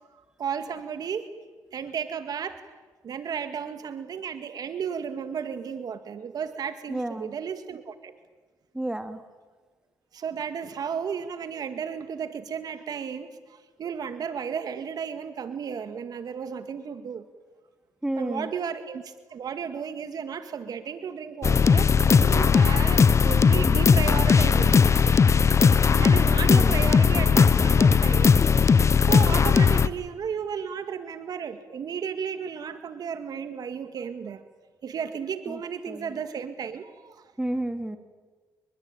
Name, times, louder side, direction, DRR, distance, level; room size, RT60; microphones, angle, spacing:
voice 1, 0.4-1.3 1.7-2.6 3.0-8.2 10.1-17.2 18.2-24.9 25.3-25.5 26.0-28.4 29.0-34.4 34.8-37.2, right 7 dB, 60° right, 9 dB, 2.0 m, -34 dB
voice 2, 6.9-7.3 8.7-9.2 18.0-18.5 26.5-27.0 35.5-35.6 35.9-36.2 37.4-38.0, right 1 dB, 10° right, 8 dB, 2.7 m, -31 dB
sound 1, 21.4-29.9, left 6 dB, 40° left, 1.1 m, -18 dB
26.5 x 23.0 x 9.0 m, 1.3 s
cardioid pair, 80°, 7 cm